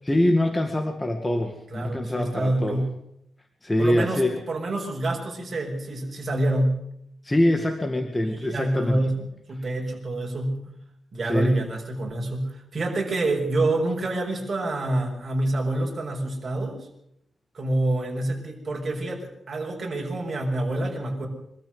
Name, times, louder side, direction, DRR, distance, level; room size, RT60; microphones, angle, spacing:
voice 1, 0.1-2.8 3.6-4.4 7.2-9.0 11.2-11.6, left 1 dB, 15° left, 5 dB, 2.1 m, -24 dB
voice 2, 1.7-2.9 3.8-4.2 4.5-6.8 8.2-10.6 11.1-16.8 17.5-21.3, right 2 dB, 40° right, 0 dB, 6.5 m, -27 dB
24.5 x 13.5 x 8.1 m, 0.76 s
cardioid pair, 105°, 0 cm